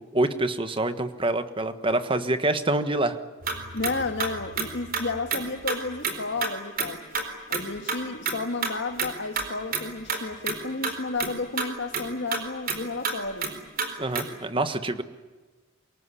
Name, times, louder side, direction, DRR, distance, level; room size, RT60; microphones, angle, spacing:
voice 1, 0.0-3.2 14.0-15.0, right 2 dB, 25° right, 10 dB, 1.4 m, -26 dB
sound 1, 3.4-6.2 6.4-6.5 6.8-6.9 7.1-7.2 7.5-7.6 7.9-8.0 8.3-8.7 9.0-9.5 9.7-9.8 10.1-10.2 10.4-10.6 10.8-10.9 11.2-11.3 11.6-11.7 11.9-12.0 12.3-12.4 12.7-12.8 13.0-13.1 13.4-13.5 13.8-13.9 14.2-14.3, right 5 dB, 45° right, 4.3 m, -29 dB
voice 2, 3.7-7.0 7.5-13.5, left 3 dB, 60° left, 7 dB, 1.9 m, -32 dB
24.5 x 22.5 x 9.9 m, 1.3 s
head